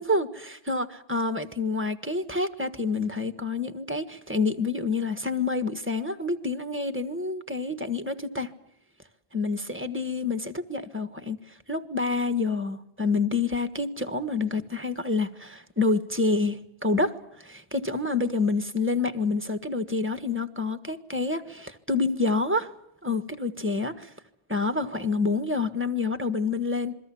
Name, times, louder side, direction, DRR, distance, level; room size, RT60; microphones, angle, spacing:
voice 1, 0.0-8.5 9.3-11.4 11.7-22.7 23.0-24.1 24.5-27.0, left 3 dB, 10° right, 1.4 m, -28 dB
27.5 x 22.5 x 7.1 m
omnidirectional pair, 1.2 m